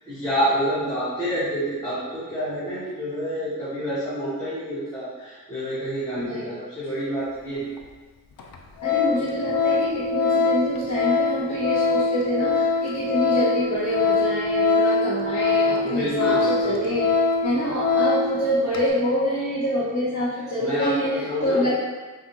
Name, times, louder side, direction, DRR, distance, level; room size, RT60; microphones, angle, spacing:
voice 1, 0.0-7.7 15.8-16.8 20.6-21.7, equal, 10° left, -13 dB, 1.3 m, -28 dB
voice 2, 6.2-6.5 8.8-17.1 17.4-21.1 21.4-21.7, left 1 dB, 55° left, -8 dB, 0.9 m, -26 dB
Organ, 7.8-7.9 8.4-8.5 8.8-18.4 18.7-18.9, left 4 dB, 90° left, 0.5 m, -23 dB
5.9 x 2.6 x 2.9 m, 1.3 s
wide cardioid pair, 90°, 33 cm